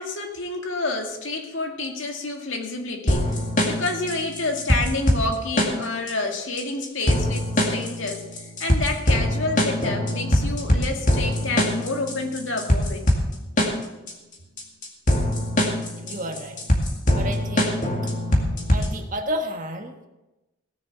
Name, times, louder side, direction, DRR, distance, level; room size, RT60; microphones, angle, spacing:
voice 1, 0.0-8.3 8.6-13.1, left 2 dB, 75° left, 2 dB, 2.1 m, -29 dB
sound 1, 3.1-19.1, left 1 dB, 40° left, 2.2 m, -23 dB
voice 2, 16.0-16.6 17.1-17.9 18.7-19.9, equal, 40° right, 4 dB, 1.5 m, -31 dB
17.5 x 6.9 x 7.0 m, 1.0 s
head